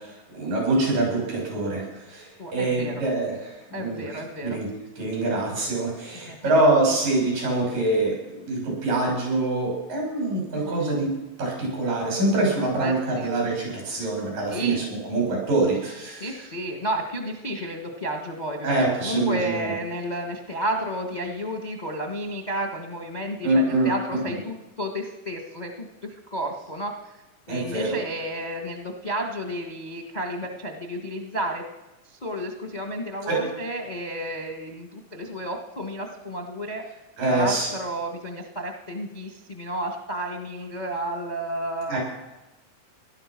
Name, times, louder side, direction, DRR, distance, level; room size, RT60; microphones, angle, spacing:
voice 1, 0.0-4.7 5.0-8.2 8.4-11.1 11.4-16.4 18.6-19.7 23.4-24.4 27.5-28.0 33.3-33.4 37.2-37.7 41.9-42.0, right 2 dB, 85° right, -2 dB, 8.0 m, -25 dB
voice 2, 2.4-3.0 3.7-4.6 6.3-6.5 10.6-10.9 12.8-13.3 14.5-14.8 16.2-18.7 19.0-27.2 27.5-31.6 32.0-36.8 37.3-42.0, right 1 dB, 40° left, 4 dB, 0.5 m, -32 dB
17.0 x 12.0 x 6.1 m, 1.0 s
omnidirectional pair, 3.8 m